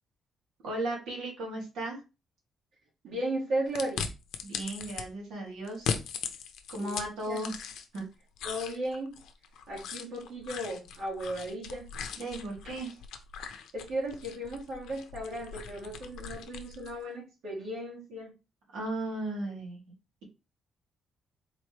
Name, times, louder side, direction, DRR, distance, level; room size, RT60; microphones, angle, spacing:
voice 1, 0.6-2.0 4.4-6.0 6.7-7.5 7.9-8.0 12.2-12.9 18.7-19.9, right 1 dB, 90° right, -3 dB, 2.0 m, -36 dB
voice 2, 3.0-4.1 6.7-7.5 8.4-9.2 9.7-11.9 13.7-18.3, right 1 dB, 70° right, -4 dB, 1.6 m, -35 dB
sound 1, 3.7-5.0 5.7-8.0 8.4-17.0, left 7 dB, 85° left, 0.6 m, -39 dB
4.0 x 3.2 x 2.9 m, 0.29 s
cardioid pair, 155°, 0 cm